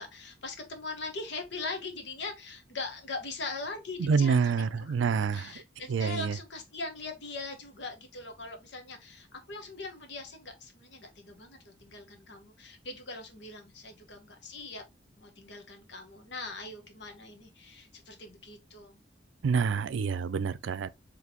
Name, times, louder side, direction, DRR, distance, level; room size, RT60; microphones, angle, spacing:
voice 1, 0.0-4.9 5.3-14.8 15.2-19.0, left 3 dB, 70° left, 1.0 m, -41 dB
voice 2, 4.0-5.6 5.9-6.4 19.4-20.9, right 5 dB, 90° right, 0.4 m, -27 dB
4.1 x 3.1 x 2.9 m
head